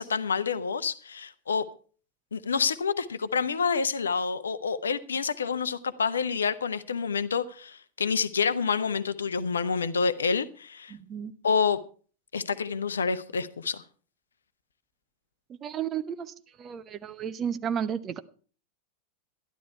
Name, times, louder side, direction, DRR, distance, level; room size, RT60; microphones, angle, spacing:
voice 1, 0.0-1.7 2.3-10.9 11.4-11.8 12.3-13.8, left 5 dB, 70° left, 0.7 m, -28 dB
voice 2, 10.9-11.3 15.6-16.3 16.6-18.2, right 8 dB, 25° right, 0.8 m, -32 dB
12.5 x 11.5 x 4.5 m
figure-of-eight pair, 90°, 0 cm